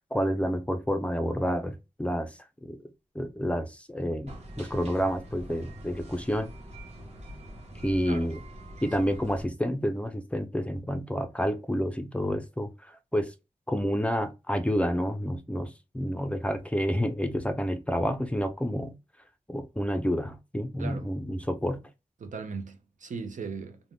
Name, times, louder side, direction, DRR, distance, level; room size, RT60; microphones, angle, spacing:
voice 1, 0.1-2.8 3.1-6.5 7.8-8.4 8.8-13.3 13.7-18.9 19.5-21.8, equal, 10° left, 0.4 m, -29 dB
sound 1, 4.3-9.4, right 1 dB, 55° right, 1.1 m, -44 dB
voice 2, 22.2-23.9, right 5 dB, 75° right, 0.6 m, -38 dB
2.6 x 2.1 x 3.3 m
wide cardioid pair, 105°, 13 cm